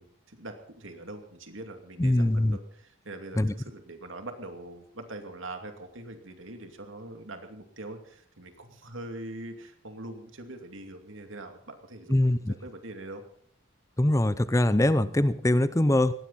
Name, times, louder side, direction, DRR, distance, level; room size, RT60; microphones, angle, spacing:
voice 1, 0.0-13.2, right 2 dB, 80° right, 6 dB, 2.6 m, -43 dB
voice 2, 2.0-2.6 3.4-3.5 12.1-12.5 14.0-16.1, left 1 dB, 15° left, 14 dB, 0.6 m, -23 dB
19.0 x 16.5 x 4.2 m, 0.64 s
head